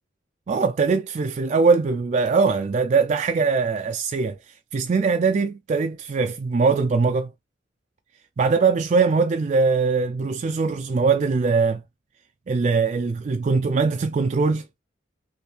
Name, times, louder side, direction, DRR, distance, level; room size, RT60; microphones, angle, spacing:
voice 1, 0.5-7.3 8.4-11.8 12.5-14.7, right 4 dB, 40° right, 0.3 m, -21 dB
3.4 x 2.7 x 2.8 m
head